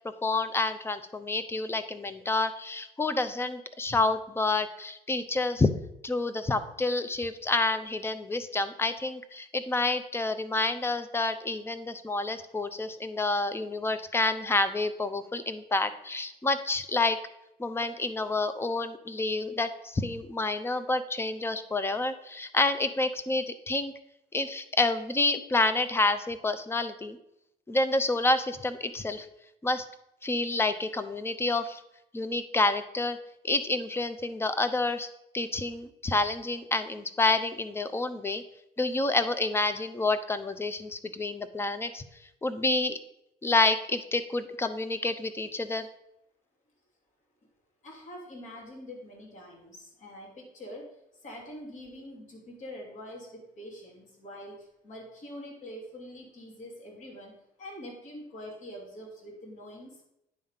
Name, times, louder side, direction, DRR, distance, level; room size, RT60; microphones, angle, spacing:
voice 1, 0.2-5.7 6.0-17.2 17.6-23.9 24.3-27.2 27.7-29.3 29.6-29.8 30.2-31.8 32.1-33.2 33.4-35.1 35.3-38.4 38.8-42.0 42.4-43.0 43.4-45.9, left 2 dB, 15° left, 11 dB, 0.6 m, -28 dB
voice 2, 47.8-50.9 51.2-60.0, equal, 45° left, -2 dB, 2.9 m, -44 dB
9.7 x 3.6 x 5.6 m, 0.81 s
cardioid pair, 110°, 17 cm